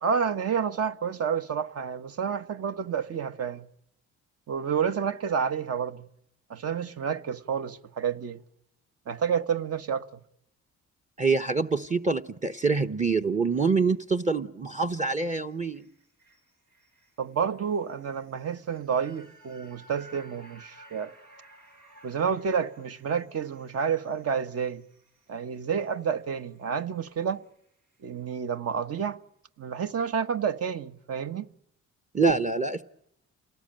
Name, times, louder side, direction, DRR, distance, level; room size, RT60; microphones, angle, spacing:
voice 1, 0.0-3.7 4.5-6.0 6.5-8.4 9.1-10.1 17.2-21.1 22.0-24.8 25.3-27.4 28.0-29.2 29.6-31.5, right 7 dB, 55° right, 1.3 m, -29 dB
voice 2, 11.2-15.9 32.1-32.8, right 4 dB, 25° right, 1.0 m, -25 dB
sound 1, 15.3-27.6 27.9-28.0, right 2 dB, 90° right, 7.5 m, -57 dB
28.5 x 19.0 x 8.9 m
cardioid pair, 90°, 30 cm